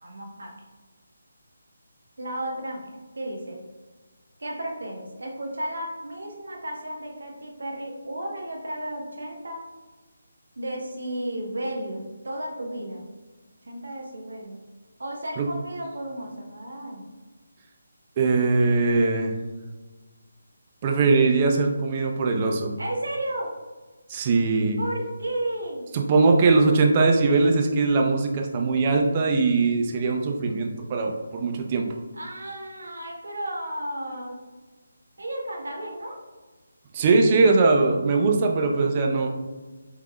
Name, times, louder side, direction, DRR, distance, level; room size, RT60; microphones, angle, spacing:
voice 1, 0.0-0.5 2.2-3.6 4.4-9.6 10.6-13.1 13.7-14.6 15.0-17.0 22.8-23.5 24.8-25.9 32.1-34.4 35.2-36.2, right 1 dB, 70° right, 0 dB, 1.1 m, -33 dB
voice 2, 18.2-19.4 20.8-22.7 24.1-24.8 25.9-31.9 36.9-39.3, right 3 dB, 30° right, 3 dB, 0.6 m, -21 dB
5.8 x 3.8 x 2.3 m, 1.3 s
figure-of-eight pair, 150°, 0 cm